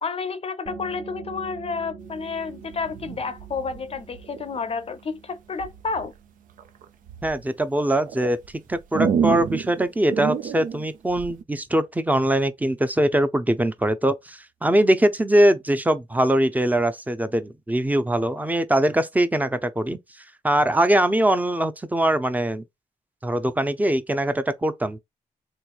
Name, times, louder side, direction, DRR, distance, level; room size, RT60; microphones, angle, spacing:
voice 1, 0.0-6.1, left 5 dB, 45° left, 0.5 m, -30 dB
sound 1, 0.7-12.0, right 5 dB, 45° right, 0.9 m, -46 dB
sound 2, 2.7-4.6 5.6-6.1 6.6-7.4 8.0-11.4, right 7 dB, 90° right, 0.5 m, -29 dB
voice 2, 7.2-8.4 8.7-20.0 20.4-22.6 23.2-25.0, right 1 dB, 10° right, 0.6 m, -22 dB
3.5 x 3.1 x 2.4 m
cardioid pair, 85°, 13 cm